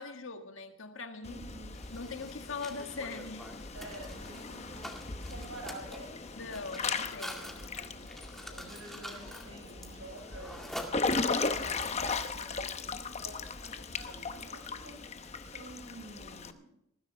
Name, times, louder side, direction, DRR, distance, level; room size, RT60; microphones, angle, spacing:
voice 1, 0.0-1.4 1.9-3.7 6.4-7.7, left 4 dB, 75° left, 6 dB, 1.7 m, -42 dB
Water / Splash splatter / Drip, 1.2-16.5, left 4 dB, 30° left, 0.9 m, -37 dB
voice 2, 1.2-1.7 3.7-6.2 7.8-8.1 8.5-10.8 11.1-16.7, right 2 dB, 85° right, 1 dB, 6.9 m, -49 dB
Mechanisms, 1.7-11.5, equal, ahead, 2.1 m, -47 dB
19.5 x 15.0 x 3.4 m, 0.79 s
head